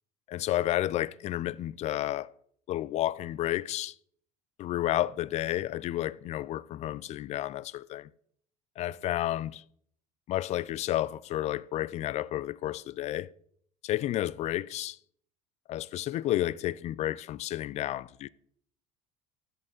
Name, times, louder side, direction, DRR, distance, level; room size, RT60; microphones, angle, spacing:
voice 1, 0.3-2.3 2.7-3.9 4.6-8.1 8.8-9.6 10.3-13.3 13.8-15.0 15.7-18.3, left 14 dB, 45° left, 0.4 m, -31 dB
13.0 x 6.5 x 3.8 m
supercardioid pair, 110°, 16 cm